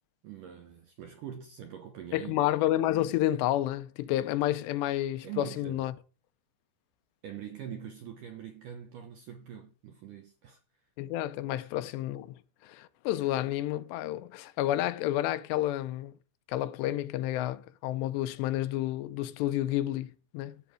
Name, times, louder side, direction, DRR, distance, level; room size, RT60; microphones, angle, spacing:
voice 1, 0.2-2.5 5.2-5.9 7.2-10.6 11.6-11.7, right 9 dB, 75° right, 1.9 m, -43 dB
voice 2, 2.1-5.9 11.0-12.3 12.6-16.1 16.5-20.6, left 14 dB, 80° left, 2.8 m, -30 dB
13.0 x 7.7 x 5.0 m
omnidirectional pair, 5.1 m